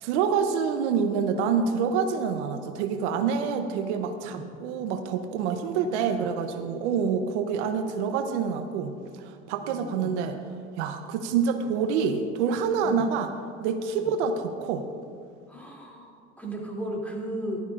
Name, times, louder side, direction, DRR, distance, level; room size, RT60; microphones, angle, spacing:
voice 1, 0.0-10.4 10.8-13.3 13.6-14.9, right 6 dB, 75° right, 7 dB, 0.8 m, -27 dB
voice 2, 9.6-10.1 12.8-13.0 13.9-14.1 15.5-17.6, right 1 dB, 5° left, -3 dB, 2.9 m, -36 dB
15.0 x 12.0 x 2.5 m, 2.3 s
hypercardioid pair, 85°, 35 cm